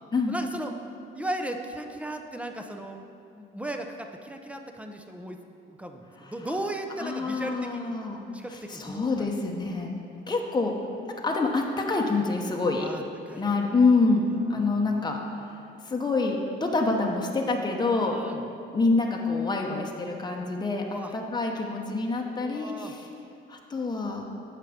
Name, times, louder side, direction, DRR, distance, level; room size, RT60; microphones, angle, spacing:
voice 1, 0.3-0.7 1.1-3.0 3.4-5.4 5.7-8.0 8.3-9.3 12.8-13.4 14.6-14.8 18.0-18.4 20.8-21.1 22.2-22.9, right 1 dB, 5° right, 4 dB, 0.7 m, -36 dB
voice 2, 7.0-8.2 8.5-9.9 10.3-10.7 11.1-12.9 13.4-15.2 15.8-18.2 18.7-23.1 23.5-24.3, left 3 dB, 20° left, 1 dB, 0.9 m, -26 dB
8.5 x 5.8 x 5.1 m, 2.7 s
cardioid pair, 90°, 20 cm